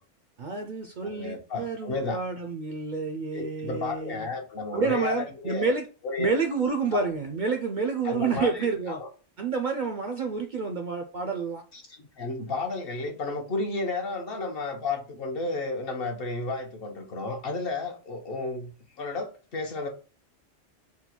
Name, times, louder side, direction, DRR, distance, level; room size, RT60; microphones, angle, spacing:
voice 1, 0.4-4.3 4.7-5.9 6.2-9.0 9.4-11.6, right 4 dB, 60° right, 0.5 m, -29 dB
voice 2, 1.0-2.2 3.3-5.7 6.0-6.3 6.9-7.0 8.0-9.1 11.7-18.7 19.0-19.9, left 3 dB, 55° left, 1.0 m, -32 dB
3.8 x 2.2 x 4.3 m
omnidirectional pair, 1.2 m